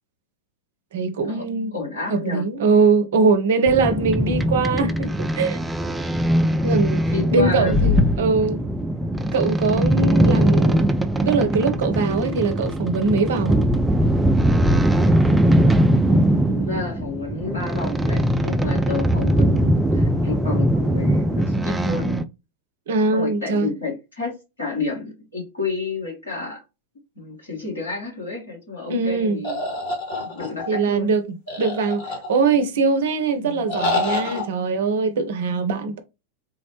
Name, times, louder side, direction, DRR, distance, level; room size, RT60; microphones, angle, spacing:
voice 1, 0.9-1.7 2.1-5.6 6.6-8.6 9.3-13.6 22.9-23.7 28.9-29.4 30.7-31.2 31.6-36.0, right 4 dB, 60° right, 0.5 m, -22 dB
voice 2, 1.7-2.5 7.1-7.9 16.1-22.2 23.1-26.6 27.2-29.6 30.2-31.1 33.3-33.7, left 4 dB, 75° left, 1.7 m, -30 dB
sound 1, 3.7-22.2, equal, 5° right, 0.3 m, -20 dB
sound 2, 29.4-30.8 31.5-32.6 33.7-34.4, left 2 dB, 55° left, 1.4 m, -27 dB
3.7 x 2.0 x 2.9 m
figure-of-eight pair, 90°, 0 cm